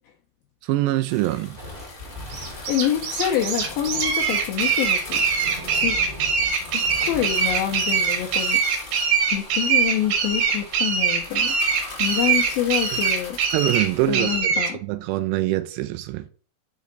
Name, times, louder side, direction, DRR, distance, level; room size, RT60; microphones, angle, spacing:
voice 1, 0.6-1.6 11.8-11.9 13.5-16.2, right 16 dB, 85° right, 2.7 m, -24 dB
sound 1, 1.1-14.4, left 3 dB, 65° left, 1.1 m, -40 dB
Thunder, 1.5-10.2, left 1 dB, 25° right, 1.3 m, -41 dB
sound 2, 2.3-14.7, right 6 dB, 65° right, 3.1 m, -23 dB
voice 2, 2.7-5.2 5.7-6.0 6.7-8.6 9.3-11.5 12.0-13.4 14.1-14.8, left 10 dB, 85° left, 2.1 m, -26 dB
6.3 x 5.2 x 3.9 m
omnidirectional pair, 4.8 m